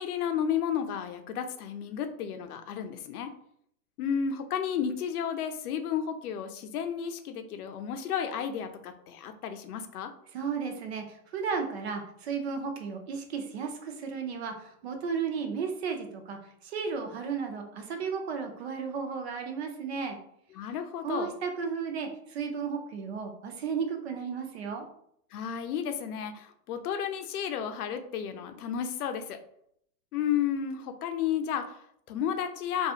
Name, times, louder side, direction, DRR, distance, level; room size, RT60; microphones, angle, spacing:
voice 1, 0.0-3.3 4.0-10.1 20.5-21.3 25.3-29.4 30.1-32.9, left 8 dB, 90° left, 7 dB, 0.6 m, -32 dB
voice 2, 10.3-20.2 21.0-24.8, right 5 dB, 45° right, 4 dB, 0.5 m, -34 dB
2.7 x 2.4 x 2.4 m, 0.69 s
supercardioid pair, 165°, 44 cm